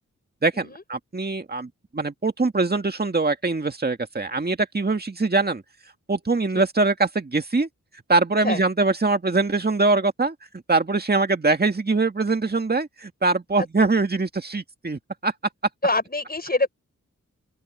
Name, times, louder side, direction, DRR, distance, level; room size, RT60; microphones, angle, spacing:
voice 1, 0.4-5.6 6.1-7.7 8.1-10.3 10.7-15.3, right 3 dB, 30° right, 2.0 m, -23 dB
voice 2, 15.8-16.7, left 2 dB, 30° left, 5.7 m, -24 dB
open air
cardioid pair, 55°, 31 cm